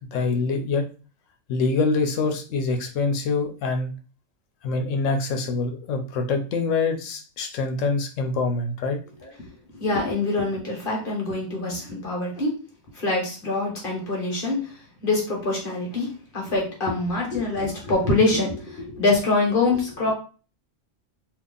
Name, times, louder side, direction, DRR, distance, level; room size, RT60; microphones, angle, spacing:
voice 1, 0.1-0.9 1.5-3.9 4.6-9.0, left 3 dB, 80° left, 6 dB, 1.0 m, -25 dB
voice 2, 9.7-12.6 12.9-20.1, left 2 dB, 45° left, -2 dB, 1.2 m, -25 dB
2.8 x 2.5 x 3.7 m, 0.36 s
omnidirectional pair, 1.3 m